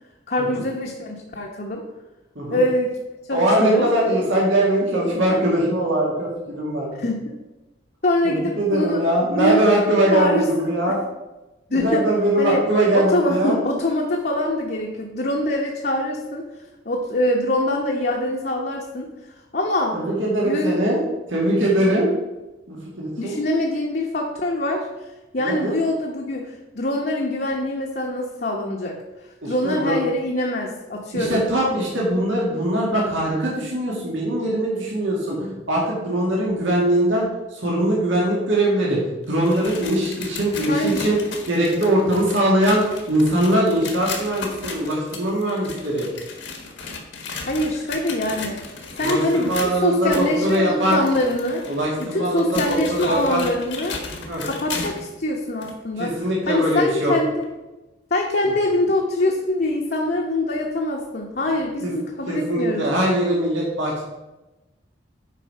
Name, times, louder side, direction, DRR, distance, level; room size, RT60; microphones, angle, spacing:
voice 1, 0.3-1.8 2.5-2.9 3.3-3.9 7.0-7.3 8.0-9.0 9.3-9.6 9.9-11.0 11.7-12.0 12.4-12.6 12.9-16.5 16.8-19.1 19.5-20.0 20.4-20.8 23.2-24.9 25.3-29.0 29.4-31.4 40.7-41.0 47.4-48.6 49.0-51.6 52.0-54.0 54.4-57.5 58.1-62.9, left 1 dB, 50° left, -1 dB, 0.9 m, -24 dB
voice 2, 3.3-7.0 8.2-11.0 11.7-13.6 19.9-21.0 21.3-22.1 22.7-23.4 25.4-25.7 29.4-30.0 31.1-39.0 39.3-41.2 41.5-42.8 43.1-46.1 49.0-51.0 51.7-53.5 54.3-54.4 56.0-57.1 61.8-61.9 62.3-63.9, right 1 dB, 85° right, -4 dB, 2.0 m, -21 dB
sound 1, 39.2-55.1 55.6-55.7 56.4-56.5 57.4-57.5, left 4 dB, 75° left, 1.5 m, -35 dB
8.3 x 4.9 x 5.5 m, 1.1 s
head